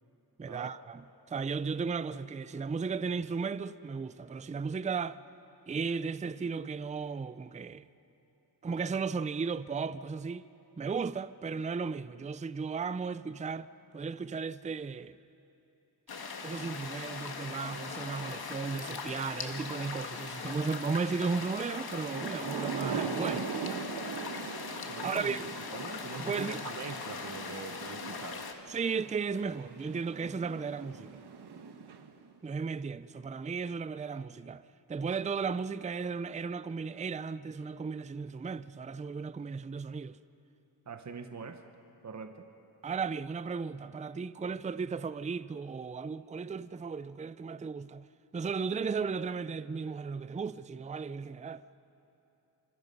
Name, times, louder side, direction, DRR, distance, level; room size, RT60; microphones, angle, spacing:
voice 1, 0.4-5.2 5.7-7.9 8.6-10.4 10.8-13.7 13.9-15.2 16.4-23.5 25.0-25.5 26.2-26.7 28.7-31.2 32.4-34.6 34.9-40.2 42.8-48.1 48.3-51.6, right 5 dB, 20° right, 0.4 m, -35 dB
sound 1, 16.1-28.5, left 5 dB, 65° left, 1.7 m, -40 dB
Thunder / Rain, 21.8-32.3, right 5 dB, 70° right, 1.3 m, -41 dB
voice 2, 24.9-28.4 40.9-41.6 42.0-42.5, right 5 dB, 40° right, 1.1 m, -43 dB
26.5 x 26.0 x 5.4 m
wide cardioid pair, 110°, 41 cm